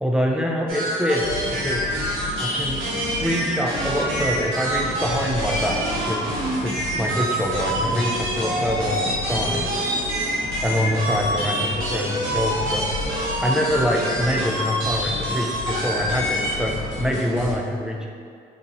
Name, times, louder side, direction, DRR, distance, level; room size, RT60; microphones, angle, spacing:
voice 1, 0.0-1.9 2.4-2.8 3.2-6.2 6.6-9.7 10.6-12.8 13.4-18.1, equal, 5° right, -1 dB, 0.4 m, -25 dB
sound 1, 0.7-16.6, right 1 dB, 90° right, 0.9 m, -26 dB
sound 2, 1.2-17.5, left 2 dB, 65° left, 0.9 m, -33 dB
4.0 x 2.8 x 2.6 m, 2.2 s
cardioid pair, 90°, 20 cm